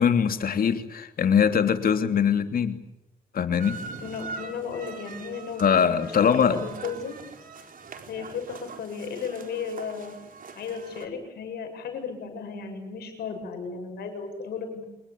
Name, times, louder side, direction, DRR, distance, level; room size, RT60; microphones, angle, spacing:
voice 1, 0.0-2.8 3.3-3.8 5.6-6.6, left 7 dB, 65° left, 8 dB, 3.0 m, -22 dB
sound 1, 3.6-11.1, right 5 dB, 60° right, 4.2 m, -42 dB
voice 2, 4.0-5.9 6.2-7.2 8.1-10.1 10.6-14.9, left 6 dB, 90° left, 5 dB, 7.6 m, -34 dB
28.5 x 21.0 x 8.7 m, 0.88 s
cardioid pair, 80°, 16 cm